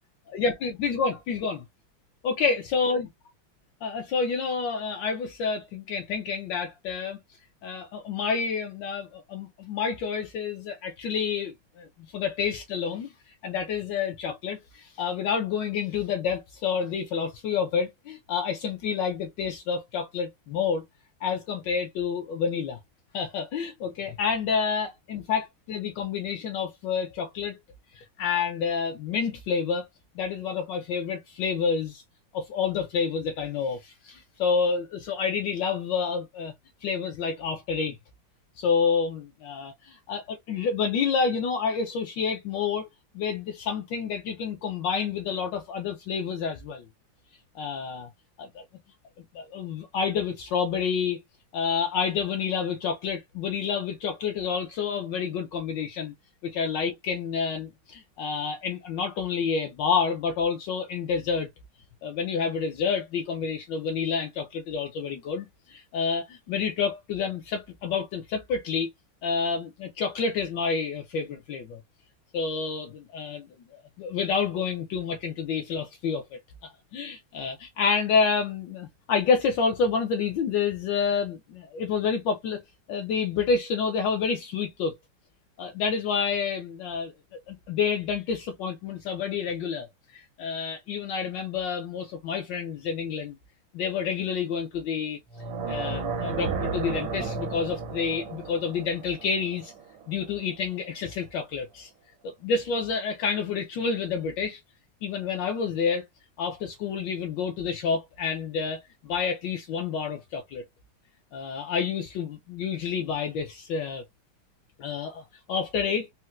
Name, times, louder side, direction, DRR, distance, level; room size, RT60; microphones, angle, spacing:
voice 1, 0.3-1.6 2.2-3.1 3.8-7.2 7.6-11.9 12.1-13.1 13.4-20.8 21.2-22.8 23.1-27.6 27.9-29.8 30.2-32.0 32.3-36.5 36.8-38.0 38.6-42.9 43.1-46.8 47.5-48.1 48.4-48.6 49.3-51.2 51.5-56.1 56.4-61.5 62.0-68.9 69.2-71.8 72.3-73.5 74.0-82.6 82.9-85.0 85.6-87.1 87.5-89.9 90.1-93.4 93.7-95.2 95.7-99.7 100.1-101.9 102.2-104.6 105.0-106.0 106.4-110.6 111.3-114.0 114.8-116.1, left 5 dB, 75° left, 1.2 m, -29 dB
sound 1, 95.3-100.4, right 4 dB, 85° right, 1.6 m, -33 dB
4.3 x 2.1 x 2.3 m
omnidirectional pair, 2.2 m